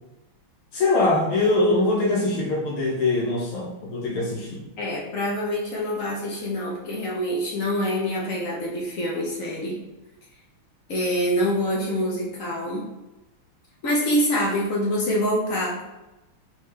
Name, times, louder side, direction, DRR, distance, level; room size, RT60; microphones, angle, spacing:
voice 1, 0.7-4.7, left 2 dB, 80° left, -3 dB, 1.6 m, -23 dB
voice 2, 4.8-9.8 10.9-12.8 13.8-15.8, equal, 60° left, -3 dB, 0.8 m, -25 dB
3.6 x 3.6 x 3.2 m, 1.0 s
omnidirectional pair, 2.3 m